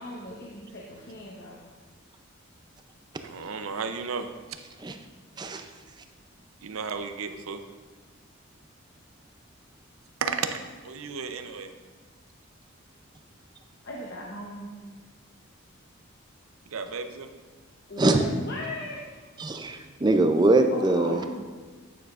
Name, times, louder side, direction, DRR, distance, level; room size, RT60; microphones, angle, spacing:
voice 1, 0.0-1.6 13.8-14.8 17.9-19.2 20.7-21.3, left 1 dB, 55° left, -3 dB, 0.9 m, -37 dB
voice 2, 3.2-4.3 6.6-7.6 10.2-11.7 16.7-17.3, right 5 dB, 80° right, 8 dB, 0.6 m, -33 dB
voice 3, 19.4-21.3, right 2 dB, 20° right, 6 dB, 0.4 m, -22 dB
9.2 x 6.9 x 2.4 m, 1.4 s
head